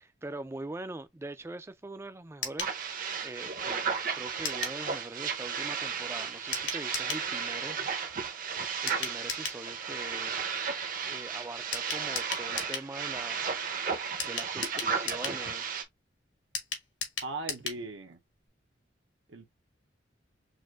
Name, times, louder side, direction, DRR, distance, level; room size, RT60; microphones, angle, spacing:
voice 1, 0.0-2.8 3.2-3.8 4.1-7.8 8.8-10.5 11.0-13.6 14.2-15.8, right 2 dB, 15° right, 0.3 m, -42 dB
sound 1, 2.4-2.8 4.4-4.8 6.5-7.3 8.9-9.6 11.7-12.9 14.2-15.4 16.5-17.8 18.1-18.2 18.5-18.6, left 5 dB, 75° left, 1.4 m, -36 dB
sound 2, 2.6-15.8, right 6 dB, 45° right, 0.7 m, -34 dB
voice 2, 17.2-18.2 19.3-19.5, right 2 dB, 80° right, 0.9 m, -38 dB
6.2 x 2.5 x 2.3 m
head